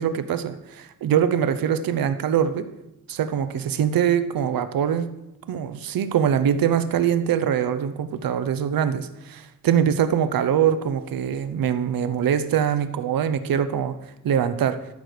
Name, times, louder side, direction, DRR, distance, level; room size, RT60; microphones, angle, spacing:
voice 1, 0.0-2.7 3.1-5.1 5.5-14.0 14.2-14.8, right 8 dB, 70° right, 12 dB, 0.8 m, -23 dB
13.0 x 4.8 x 6.7 m, 0.96 s
wide cardioid pair, 170°, 36 cm